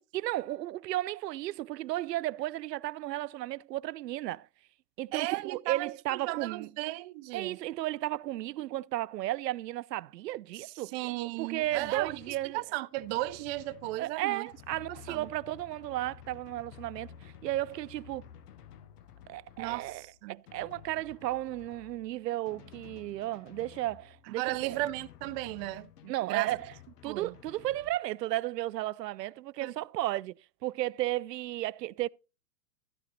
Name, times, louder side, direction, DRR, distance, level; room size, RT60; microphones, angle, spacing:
voice 1, 0.1-4.5 5.0-6.7 7.3-12.6 14.0-18.2 19.3-20.0 20.3-24.8 26.1-26.7 27.0-32.1, right 15 dB, 80° right, 0.6 m, -34 dB
voice 2, 5.1-7.6 10.6-10.7 10.9-14.5 14.9-15.3 19.6-20.4 24.3-26.6 27.0-27.3 29.6-29.7, right 19 dB, 40° right, 0.6 m, -35 dB
Drum, 11.6-28.0, left 9 dB, 70° left, 1.2 m, -53 dB
13.5 x 8.3 x 4.1 m
hypercardioid pair, 110°, 48 cm